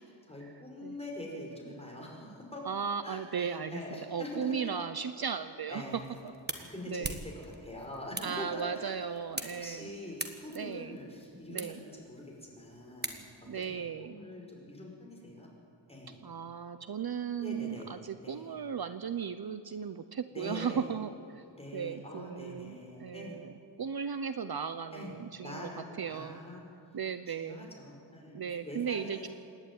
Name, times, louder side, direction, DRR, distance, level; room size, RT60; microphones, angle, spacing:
voice 1, 0.2-2.7 3.0-3.2 3.7-4.7 5.7-6.2 6.7-9.0 9.6-15.5 15.9-16.2 17.4-17.9 18.2-18.6 20.3-20.9 21.5-23.4 24.9-25.1 25.4-26.6 27.3-29.3, left 1 dB, 15° left, -1 dB, 5.3 m, -44 dB
voice 2, 2.6-6.0 6.5-7.2 8.2-9.9 10.5-11.0 11.5-11.8 13.5-14.2 16.2-21.4 21.7-25.7 26.0-26.4 26.9-27.7 28.3-29.3, right 7 dB, 55° right, 11 dB, 0.7 m, -36 dB
sound 1, 5.8-13.6, right 2 dB, 20° right, 1.5 m, -44 dB
27.0 x 11.0 x 9.4 m, 2.5 s
wide cardioid pair, 125°, 45 cm